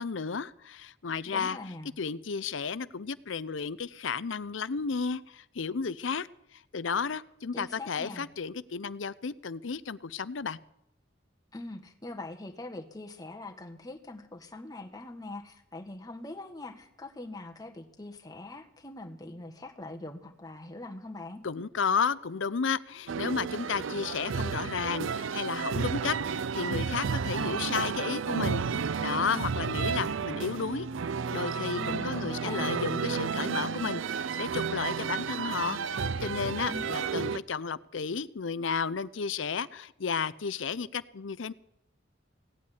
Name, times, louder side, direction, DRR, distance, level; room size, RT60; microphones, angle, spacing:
voice 1, 0.0-1.6 2.0-6.3 6.5-10.6 21.4-28.6 29.0-30.9 31.3-41.5, left 5 dB, 75° left, 17 dB, 0.7 m, -33 dB
voice 2, 1.3-1.9 7.5-8.3 11.5-21.4 31.7-32.7 36.7-37.0, left 2 dB, 20° left, 3 dB, 1.6 m, -42 dB
sound 1, 23.1-37.4, right 5 dB, 85° right, 0.5 m, -32 dB
17.0 x 8.5 x 9.9 m, 0.79 s
head